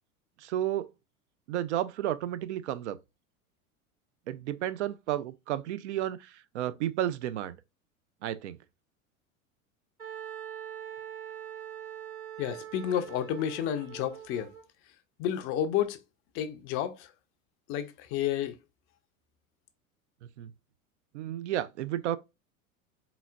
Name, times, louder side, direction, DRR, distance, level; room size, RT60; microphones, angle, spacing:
voice 1, 0.4-0.9 1.5-3.0 4.3-7.6 8.2-8.6 20.4-20.5 21.1-22.2, right 12 dB, 55° right, 0.5 m, -32 dB
Wind instrument woodwind instrument, 10.0-14.6, right 10 dB, 85° right, 2.2 m, -43 dB
voice 2, 12.4-14.5 15.2-16.0 16.3-17.1 17.7-18.6, left 10 dB, 30° left, 0.5 m, -31 dB
4.0 x 3.9 x 2.2 m
figure-of-eight pair, 80°, 44 cm